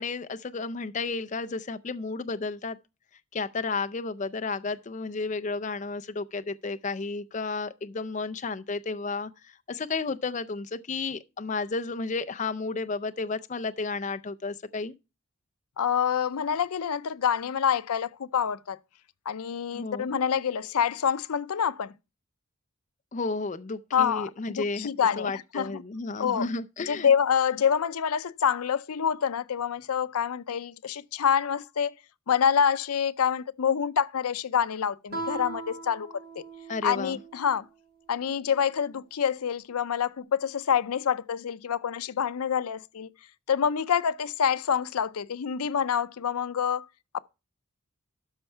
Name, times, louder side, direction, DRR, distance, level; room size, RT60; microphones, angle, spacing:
voice 1, 0.0-2.8 3.3-14.9 19.7-20.1 23.1-24.9 25.2-27.1 36.7-37.2, left 3 dB, 35° left, 0.4 m, -32 dB
voice 2, 15.8-18.8 19.3-21.9 23.9-24.3 24.5-25.8 26.2-26.4 26.9-31.9 32.3-36.1 36.4-36.5 36.8-37.6 38.1-43.1 43.5-46.9 47.1-47.2, left 7 dB, 85° left, 0.5 m, -27 dB
Guitar, 35.1-37.6, right 3 dB, 45° right, 2.8 m, -39 dB
12.5 x 4.4 x 5.5 m
head